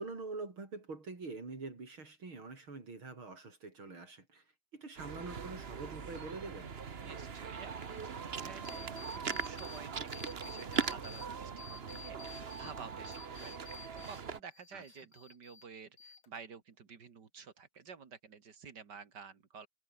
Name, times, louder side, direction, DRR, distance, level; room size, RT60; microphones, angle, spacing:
voice 1, 0.0-6.7 14.7-15.1, right 3 dB, 85° right, 5.8 m, -45 dB
sound 1, 5.0-14.4, right 6 dB, 35° right, 1.2 m, -41 dB
voice 2, 7.0-12.2 12.5-13.6 13.9-19.7, right 6 dB, 55° right, 2.6 m, -51 dB
sound 2, 8.7-9.8 10.1-11.3 11.6-14.2 14.5-15.7 16.0-16.6, left 5 dB, 90° left, 3.7 m, -52 dB
omnidirectional pair, 2.2 m